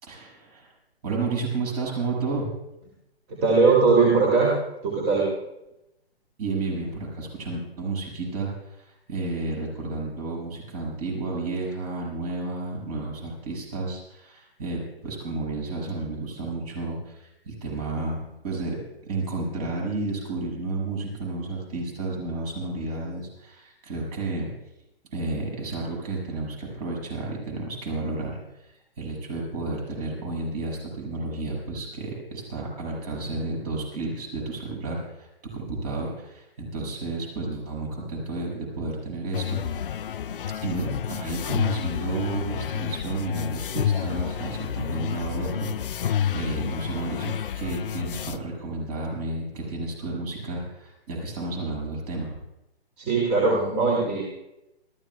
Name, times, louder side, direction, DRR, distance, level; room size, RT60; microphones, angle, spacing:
voice 1, 0.0-0.7 1.0-2.5 6.4-24.5 25.1-39.6 40.5-52.4, right 3 dB, 40° right, -2 dB, 6.9 m, -32 dB
voice 2, 3.3-4.5 4.8-5.3 53.0-54.2, right 4 dB, 25° right, -2 dB, 2.8 m, -20 dB
sound 1, 39.3-48.4, left 8 dB, 55° left, 0.6 m, -29 dB
27.5 x 14.5 x 2.4 m, 0.89 s
hypercardioid pair, 145°, 31 cm